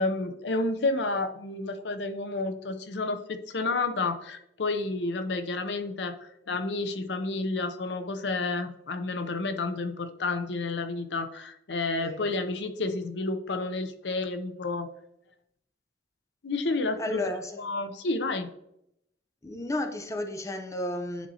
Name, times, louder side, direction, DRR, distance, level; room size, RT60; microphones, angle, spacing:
voice 1, 0.0-14.9 16.4-17.3 17.6-18.5, left 3 dB, 85° left, 0.6 m, -30 dB
voice 2, 17.0-17.6 19.4-21.3, left 1 dB, 20° left, 0.6 m, -32 dB
10.0 x 4.2 x 2.8 m
head